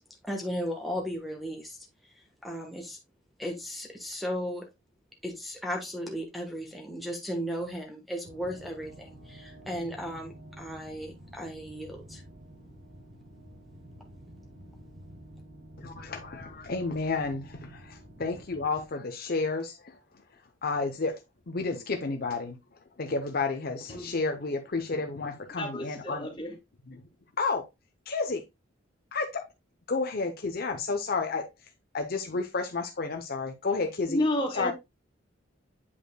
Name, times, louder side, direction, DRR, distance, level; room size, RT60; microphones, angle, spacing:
voice 1, 0.2-1.8 2.0-2.1 2.4-3.0 3.4-4.7 5.2-12.2, equal, ahead, 1.2 m, -35 dB
sound 1, 8.2-18.9, right 1 dB, 50° right, 1.8 m, -49 dB
voice 2, 15.8-20.0 20.6-22.6 23.0-26.3 26.9-27.0 27.4-27.7 28.1-28.4 29.1-29.5 29.9-31.5 31.9-34.2 34.5-34.7, left 3 dB, 55° left, 0.8 m, -31 dB
voice 3, 25.6-26.5 34.1-34.7, left 1 dB, 25° left, 2.2 m, -30 dB
8.5 x 5.2 x 2.2 m
head